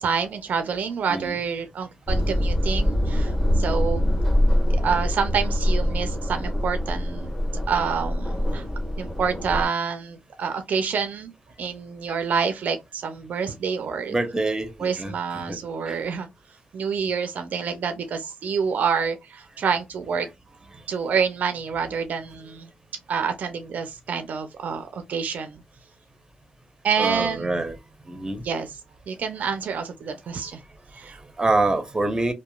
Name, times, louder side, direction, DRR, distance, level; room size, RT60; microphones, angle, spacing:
voice 1, 0.0-4.0 4.8-7.3 7.7-8.6 9.0-11.3 11.6-14.1 14.8-16.3 16.7-20.3 20.9-22.7 23.1-25.6 26.8-27.5 28.4-28.7 29.1-30.6 30.9-31.2, right 6 dB, 65° right, 0.4 m, -27 dB
sound 1, 2.1-9.7, equal, 5° left, 1.0 m, -24 dB
voice 2, 14.1-15.1 15.5-15.6 27.0-27.8 28.1-28.4 31.4-32.3, right 2 dB, 20° right, 0.7 m, -25 dB
2.9 x 2.1 x 2.2 m
cardioid pair, 65°, 3 cm